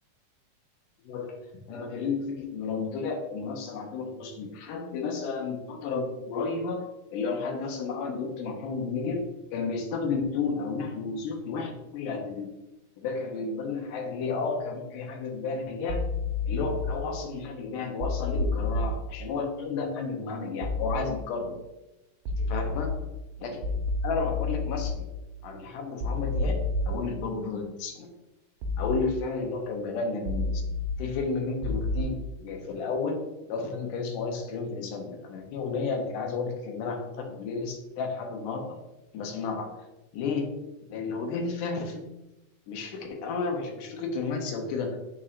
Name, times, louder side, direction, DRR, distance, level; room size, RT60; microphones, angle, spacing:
voice 1, 1.1-1.4 1.7-6.8 7.1-9.2 9.5-12.5 13.0-16.0 16.5-21.6 22.5-22.9 23.4-23.6 24.0-25.0 25.4-26.6 26.9-28.1 28.8-30.6 31.0-38.6 39.1-39.8 40.1-40.5 40.9-42.0 42.7-45.0, left 4 dB, 80° left, 3 dB, 2.5 m, -32 dB
sound 1, 15.9-16.9 18.0-18.9 20.6-20.9 22.3-22.9 23.6-24.9 26.0-26.9 28.6-28.9 30.3-30.9 31.6-32.0, left 3 dB, 90° right, 2.4 m, -29 dB
9.0 x 4.4 x 2.5 m, 0.97 s
omnidirectional pair, 3.7 m